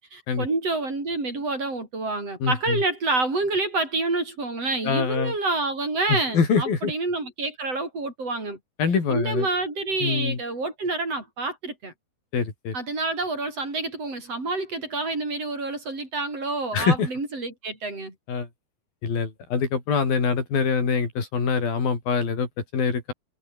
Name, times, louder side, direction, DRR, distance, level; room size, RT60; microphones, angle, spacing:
voice 1, 0.1-8.6 9.1-11.9 12.7-18.1, right 3 dB, 40° right, 8.2 m, -28 dB
voice 2, 2.4-2.8 4.8-5.3 6.1-6.9 8.8-9.5 10.0-10.4 12.3-12.7 16.7-17.1 18.3-18.5 19.0-23.1, left 5 dB, 85° left, 6.9 m, -24 dB
omnidirectional pair, 4.1 m